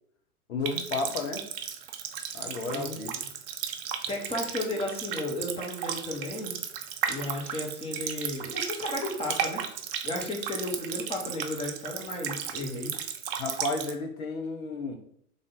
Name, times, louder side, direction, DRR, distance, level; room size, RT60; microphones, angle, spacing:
voice 1, 0.5-1.4 2.3-3.1 13.4-15.0, left 3 dB, 65° left, 3 dB, 1.1 m, -32 dB
Water tap faucet, 0.6-13.9, right 8 dB, 40° right, 0.5 m, -35 dB
voice 2, 4.1-6.5 7.1-9.7 10.0-12.9, left 1 dB, 15° left, 0 dB, 1.1 m, -34 dB
3.5 x 3.5 x 3.9 m, 0.66 s
figure-of-eight pair, 95°, 45 cm